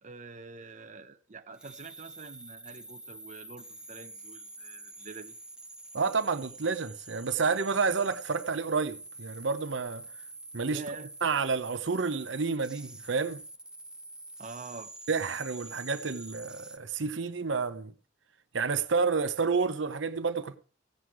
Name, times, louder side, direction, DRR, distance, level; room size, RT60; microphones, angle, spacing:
voice 1, 0.0-5.4 10.7-11.1 14.4-14.9, right 3 dB, 40° right, 0.8 m, -45 dB
sound 1, 1.5-16.8, right 2 dB, 5° right, 0.9 m, -47 dB
voice 2, 5.9-10.0 10.5-10.8 11.2-13.4 15.1-17.9 18.5-20.6, right 4 dB, 75° right, 0.8 m, -29 dB
16.0 x 7.8 x 4.7 m
head